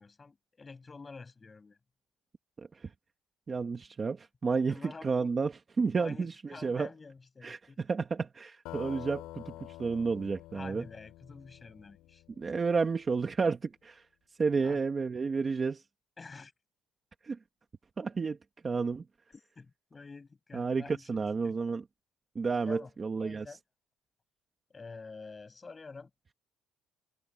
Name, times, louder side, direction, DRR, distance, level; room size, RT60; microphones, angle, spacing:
voice 1, 0.0-1.8 4.7-5.3 6.0-7.8 10.5-12.2 14.6-14.8 16.2-16.5 19.3-21.5 22.6-22.9 23.2-23.6 24.7-26.1, left 4 dB, 20° left, 6.9 m, -48 dB
voice 2, 2.6-2.9 3.5-6.9 7.4-10.9 12.4-14.0 14.4-15.8 17.2-17.4 18.0-18.4 18.6-19.0 20.5-21.8 22.3-23.4, right 4 dB, 20° right, 1.3 m, -31 dB
sound 1, 8.7-12.9, left 16 dB, 85° left, 3.0 m, -47 dB
cardioid pair, 170°, 0 cm